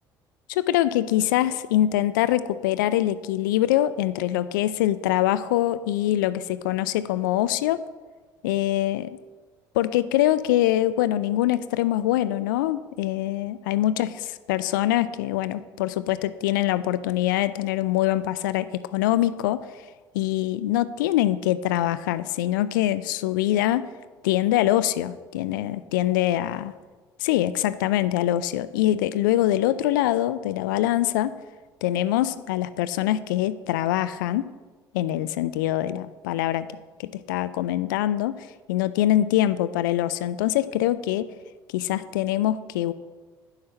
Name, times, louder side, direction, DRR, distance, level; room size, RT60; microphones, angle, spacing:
voice 1, 0.5-7.8 8.4-9.2 9.7-19.6 20.1-23.9 24.2-26.7 27.2-31.3 31.8-34.5 34.9-36.7 37.0-41.3 41.7-42.9, left 13 dB, 70° left, 14 dB, 0.4 m, -24 dB
9.7 x 5.7 x 6.7 m, 1.3 s
figure-of-eight pair, 55°, 11 cm